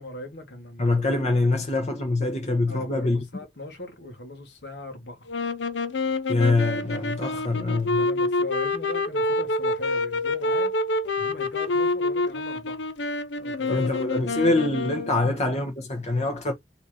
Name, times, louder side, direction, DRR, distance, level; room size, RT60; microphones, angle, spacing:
voice 1, 0.0-1.0 1.4-1.6 2.7-5.3 8.0-10.7 11.2-12.8 13.4-13.9, left 1 dB, 70° left, 1.7 m, -39 dB
voice 2, 0.8-3.2 6.3-8.1 13.7-16.5, left 2 dB, 40° left, 1.1 m, -24 dB
sound 1, 5.3-15.3, left 2 dB, 90° left, 0.7 m, -27 dB
4.1 x 2.9 x 3.9 m
head